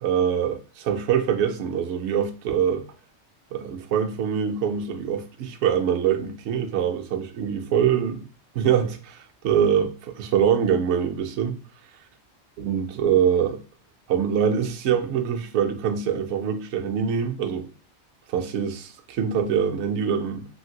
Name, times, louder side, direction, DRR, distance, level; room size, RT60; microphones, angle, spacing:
voice 1, 0.0-2.8 3.5-8.2 8.5-11.6 12.6-13.6 14.1-17.7 18.3-20.5, right 8 dB, 65° right, 0.8 m, -24 dB
3.2 x 2.5 x 2.8 m
omnidirectional pair, 1.3 m